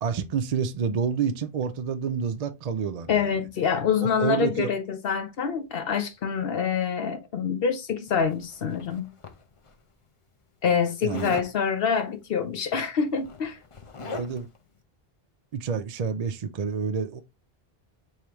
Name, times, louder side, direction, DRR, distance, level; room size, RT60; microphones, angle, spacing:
voice 1, 0.0-3.3 4.0-4.7 11.0-11.4 14.0-14.5 15.5-17.2, right 6 dB, 55° right, 0.5 m, -28 dB
voice 2, 3.1-9.1 10.6-13.6, left 6 dB, 70° left, 0.9 m, -26 dB
Zipper (clothing), 8.1-9.7 11.1-11.5 12.7-12.8 13.1-14.6, left 4 dB, 35° left, 0.7 m, -41 dB
4.9 x 3.2 x 2.9 m
omnidirectional pair, 1.0 m